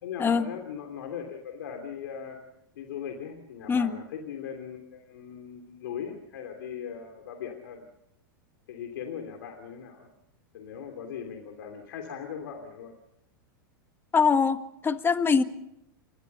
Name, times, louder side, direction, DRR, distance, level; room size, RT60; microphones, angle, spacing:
voice 1, 0.0-2.4 2.7-7.9 8.7-10.1 10.5-12.9, left 8 dB, 70° left, 3 dB, 3.1 m, -39 dB
voice 2, 14.1-15.4, left 5 dB, 20° left, 10 dB, 1.6 m, -23 dB
30.0 x 13.5 x 6.9 m, 0.82 s
hypercardioid pair, 105°, 12 cm